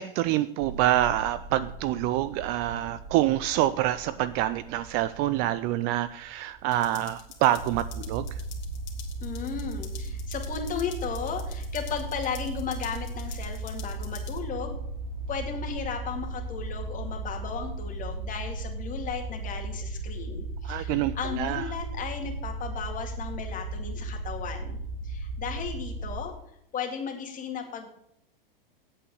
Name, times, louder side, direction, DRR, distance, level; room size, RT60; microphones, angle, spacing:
voice 1, 0.0-8.3 20.6-21.7, right 13 dB, 35° right, 15 dB, 0.4 m, -26 dB
sound 1, 0.6-18.0, right 3 dB, 20° right, 2.7 m, -48 dB
sound 2, 6.7-14.4, left 9 dB, 50° left, 2.2 m, -48 dB
sound 3, 7.6-26.2, right 2 dB, 60° right, 1.7 m, -35 dB
voice 2, 9.2-14.8 15.3-26.3 26.7-27.9, left 7 dB, 25° left, 3 dB, 2.2 m, -35 dB
8.6 x 8.2 x 6.5 m, 0.76 s
hypercardioid pair, 110°, 29 cm